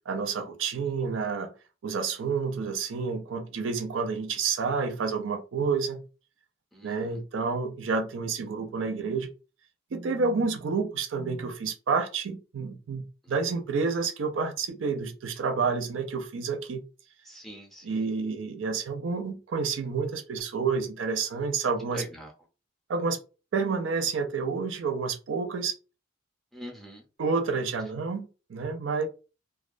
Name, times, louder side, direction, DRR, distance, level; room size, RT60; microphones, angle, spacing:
voice 1, 0.1-1.5 1.8-6.0 6.8-9.3 9.9-16.9 17.8-22.0 22.9-23.2 23.5-25.7 27.2-29.1, right 5 dB, 70° right, 0.4 m, -29 dB
voice 2, 6.7-7.2 13.2-13.3 17.2-18.0 21.9-22.3 26.5-27.0, equal, ahead, 0.5 m, -43 dB
2.3 x 2.1 x 2.5 m
head